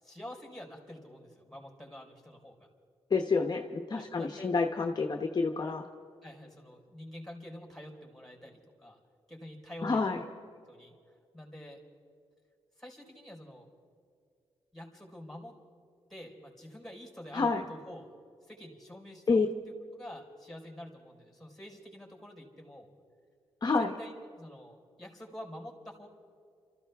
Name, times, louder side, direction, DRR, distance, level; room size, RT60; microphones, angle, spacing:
voice 1, 0.0-2.7 3.9-4.5 6.2-9.0 9.3-10.2 10.7-10.9 11.3-11.8 12.8-13.7 14.7-15.5 16.1-18.1 18.5-19.4 19.9-22.9 23.8-26.1, equal, 5° left, 1 dB, 4.4 m, -47 dB
voice 2, 3.1-5.8 9.8-10.2 17.3-17.6 19.3-19.5 23.6-23.9, left 4 dB, 45° left, 4 dB, 0.9 m, -28 dB
28.5 x 14.0 x 3.5 m, 2.3 s
cardioid pair, 80°, 10 cm